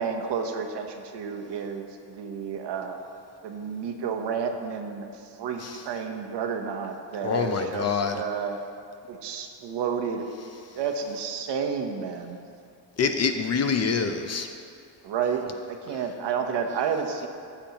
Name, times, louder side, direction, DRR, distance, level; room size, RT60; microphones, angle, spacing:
voice 1, 0.0-3.0 3.4-5.1 5.4-8.6 9.1-10.2 10.7-12.4 15.0-17.3, right 6 dB, 60° right, 5 dB, 1.0 m, -31 dB
voice 2, 7.2-8.2 13.0-14.5, left 5 dB, 35° left, 6 dB, 0.5 m, -26 dB
15.0 x 6.8 x 2.9 m, 2.4 s
cardioid pair, 125°, 46 cm